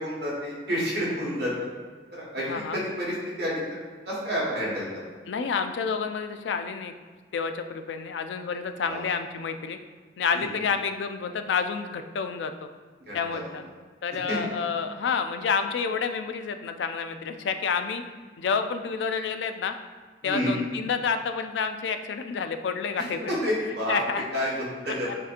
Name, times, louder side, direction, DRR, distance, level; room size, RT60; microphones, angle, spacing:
voice 1, 0.0-1.5 2.1-3.6 4.0-5.0 8.8-9.0 10.3-10.5 13.1-13.4 14.3-14.4 20.2-20.6 23.0-24.0 24.3-24.5 24.8-25.1, equal, 65° right, -5 dB, 1.5 m, -29 dB
voice 2, 2.5-2.8 5.3-6.9 7.3-9.8 10.2-12.7 13.1-13.6 14.0-18.0 18.4-19.7 20.2-23.5 23.9-24.3 24.6-25.1, left 5 dB, 90° left, 8 dB, 0.3 m, -29 dB
7.2 x 2.8 x 2.5 m, 1.5 s
head